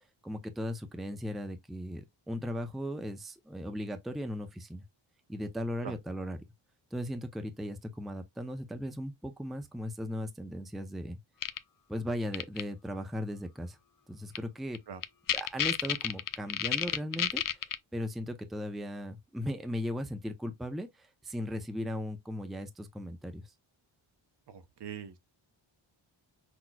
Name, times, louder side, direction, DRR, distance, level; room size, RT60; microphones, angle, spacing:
voice 1, 0.2-4.8 5.3-6.4 6.9-11.2 11.9-13.8 14.1-14.8 15.3-17.6 17.9-23.5, equal, ahead, 0.5 m, -37 dB
sound 1, 11.4-11.6 12.3-12.6 14.4-14.5 14.7-14.8 15.0-17.8, left 9 dB, 45° left, 0.5 m, -30 dB
voice 2, 24.5-25.2, right 7 dB, 55° right, 0.8 m, -42 dB
6.0 x 2.9 x 2.2 m
wide cardioid pair, 135°, 48 cm